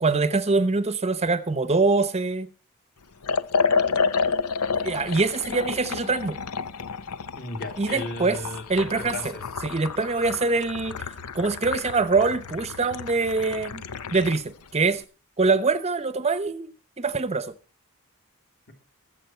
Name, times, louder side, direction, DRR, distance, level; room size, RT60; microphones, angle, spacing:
voice 1, 0.0-2.5 4.8-6.4 7.8-8.4 8.7-9.2 9.6-11.0 11.3-13.8 14.1-15.0 15.4-16.7 17.0-17.5, right 3 dB, 30° right, 0.8 m, -24 dB
Liquid, 3.2-14.5, left 5 dB, 85° left, 0.8 m, -30 dB
voice 2, 7.3-9.4, left 2 dB, 45° left, 3.0 m, -35 dB
22.5 x 7.7 x 4.4 m
head